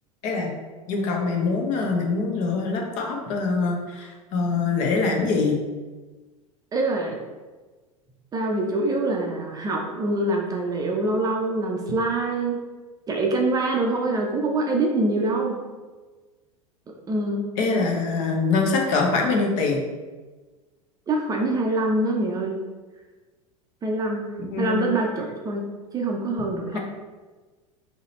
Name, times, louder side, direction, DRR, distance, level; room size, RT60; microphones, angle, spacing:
voice 1, 0.9-5.6 17.6-19.8 24.5-24.9, left 4 dB, 45° left, 1 dB, 0.9 m, -24 dB
voice 2, 6.7-7.2 8.3-12.6 13.1-15.6 17.1-17.5 21.1-22.6 23.8-25.6 25.9-26.8, right 2 dB, 20° right, 0 dB, 0.6 m, -25 dB
3.9 x 2.8 x 4.2 m, 1.3 s
figure-of-eight pair, 80°, 18 cm